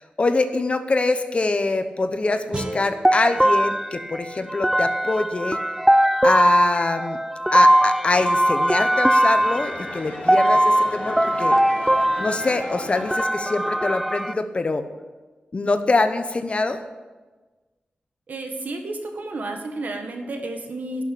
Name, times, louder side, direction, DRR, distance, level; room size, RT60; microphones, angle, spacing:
voice 1, 0.0-5.6 6.2-7.2 7.5-11.6 12.2-14.9 15.5-16.8, left 3 dB, 40° left, 9 dB, 0.9 m, -24 dB
sound 1, 2.5-5.6, right 1 dB, 30° right, 1.3 m, -38 dB
sound 2, 3.0-14.3, right 1 dB, 5° right, 0.4 m, -20 dB
sound 3, 9.3-13.5, left 2 dB, 65° left, 4.1 m, -38 dB
voice 2, 18.3-21.0, right 2 dB, 65° right, 4 dB, 1.7 m, -31 dB
11.5 x 6.8 x 8.6 m, 1.3 s
wide cardioid pair, 105°, 3 cm